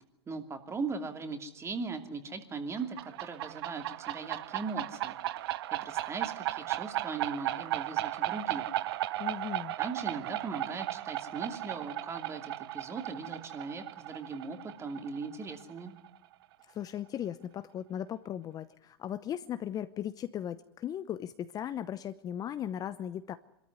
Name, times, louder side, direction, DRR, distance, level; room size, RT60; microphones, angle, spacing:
voice 1, 0.3-5.2 5.4-8.7 9.8-16.0, right 4 dB, 20° right, 6 dB, 2.7 m, -39 dB
sound 1, 2.8-16.2, right 15 dB, 60° right, 0.9 m, -36 dB
voice 2, 9.2-9.7 16.7-23.4, left 10 dB, 25° left, 12 dB, 0.8 m, -37 dB
25.0 x 13.5 x 9.7 m, 0.85 s
hypercardioid pair, 120°, 14 cm